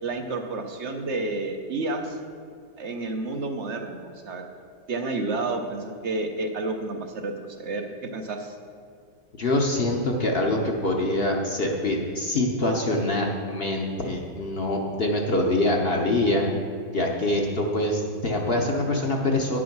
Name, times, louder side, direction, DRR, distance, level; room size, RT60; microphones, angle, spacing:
voice 1, 0.0-2.2 2.8-4.4 4.9-7.8 8.1-8.5, right 2 dB, 55° right, 4 dB, 0.8 m, -30 dB
voice 2, 9.4-16.5 16.9-19.6, left 1 dB, 45° left, 1 dB, 0.8 m, -24 dB
9.5 x 6.2 x 5.9 m, 2.3 s
omnidirectional pair, 1.8 m